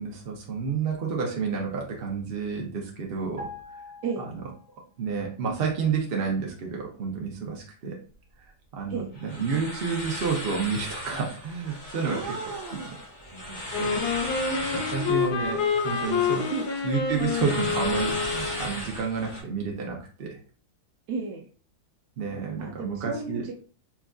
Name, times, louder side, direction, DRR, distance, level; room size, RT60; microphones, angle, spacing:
voice 1, 0.0-3.5 3.8-3.9 5.0-8.0 8.7-12.2 13.3-14.0 14.7-16.5 16.8-20.4 22.2-23.5, right 5 dB, 60° right, -1 dB, 0.6 m, -30 dB
sound 1, 3.4-5.0 5.3-5.5, left 2 dB, 40° right, 1.4 m, -43 dB
sound 2, 9.1-19.4, left 1 dB, 35° left, 0.9 m, -36 dB
voice 2, 12.1-12.8 16.5-16.7 21.1-21.4 22.6-23.6, right 5 dB, 75° right, 0 dB, 1.1 m, -33 dB
Wind instrument woodwind instrument, 13.7-18.7, left 6 dB, 75° left, 1.3 m, -28 dB
4.4 x 2.4 x 2.3 m, 0.41 s
omnidirectional pair, 1.8 m